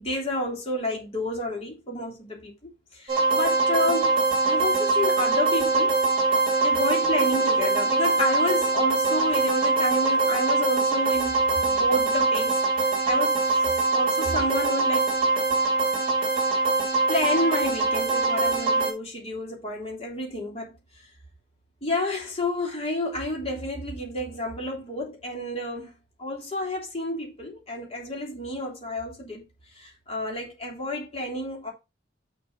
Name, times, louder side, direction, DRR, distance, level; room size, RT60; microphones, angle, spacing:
voice 1, 0.0-2.5 2.9-4.1 4.4-6.0 6.6-13.6 13.9-15.1 17.1-20.7 21.8-25.9 26.2-29.4 29.7-31.7, left 1 dB, 30° left, 3.1 m, -30 dB
sound 1, 3.1-18.9, right 3 dB, 30° right, 3.5 m, -23 dB
6.8 x 4.4 x 5.8 m
head